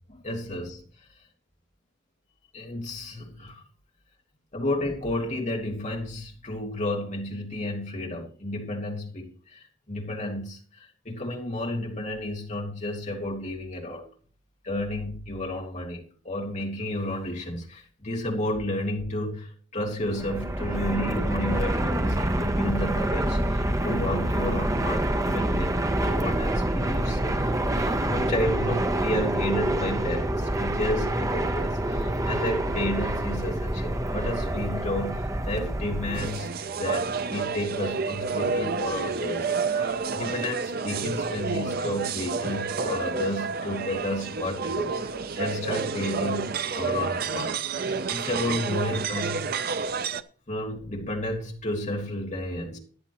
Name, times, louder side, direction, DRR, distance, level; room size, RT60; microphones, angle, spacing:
voice 1, 0.1-0.8 2.5-3.6 4.5-10.6 11.0-14.1 14.6-46.5 46.7-49.4 50.5-52.8, left 1 dB, 40° left, 0 dB, 2.4 m, -32 dB
Fixed-wing aircraft airplane, 20.0-36.4, right 1 dB, 15° right, 0.8 m, -27 dB
sound 1, 36.1-50.2, right 5 dB, 50° right, 0.6 m, -30 dB
14.0 x 10.0 x 3.0 m, 0.44 s
head